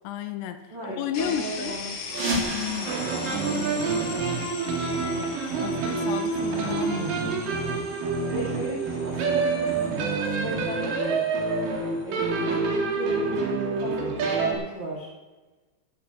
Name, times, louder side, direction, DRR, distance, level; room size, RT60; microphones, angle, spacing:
voice 1, 0.0-1.8 2.5-2.9 5.6-7.4, left 10 dB, 80° left, 7 dB, 2.5 m, -33 dB
voice 2, 0.7-2.3 2.7-5.6 8.3-11.2 12.0-15.1, right 2 dB, 80° right, -4 dB, 1.0 m, -37 dB
sound 1, 1.1-14.8, left 4 dB, 50° left, 2.7 m, -41 dB
sound 2, 2.0-4.7, right 1 dB, 30° right, 3.0 m, -32 dB
sound 3, 2.8-14.5, right 4 dB, 55° right, 2.9 m, -27 dB
11.5 x 6.1 x 7.9 m, 1.2 s
omnidirectional pair, 5.5 m